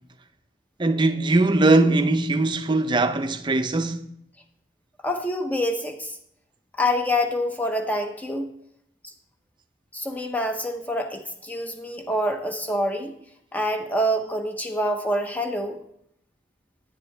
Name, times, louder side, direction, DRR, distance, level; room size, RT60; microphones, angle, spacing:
voice 1, 0.8-4.0, right 2 dB, 25° right, 0.5 m, -20 dB
voice 2, 5.0-6.2 6.8-8.5 9.9-13.1 13.5-15.8, equal, 10° left, 0.8 m, -26 dB
9.8 x 7.5 x 3.3 m
head